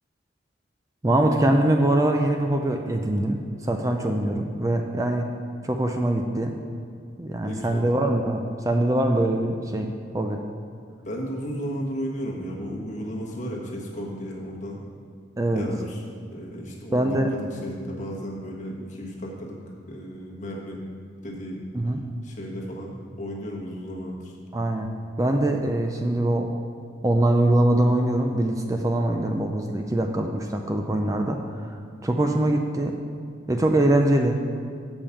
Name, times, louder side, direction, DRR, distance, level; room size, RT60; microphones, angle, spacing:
voice 1, 1.0-5.3 5.6-6.6 7.2-10.4 15.4-15.7 16.9-17.3 21.7-22.0 24.5-24.9 25.2-26.5 27.0-31.7 32.0-33.0 33.5-34.4, right 1 dB, 20° right, 3 dB, 0.4 m, -23 dB
voice 2, 7.4-7.8 11.0-14.8 15.5-16.0 16.3-19.6 19.9-20.8 21.2-21.7 22.2-24.3, equal, 40° left, -2 dB, 1.3 m, -34 dB
7.3 x 5.1 x 6.9 m, 2.3 s
head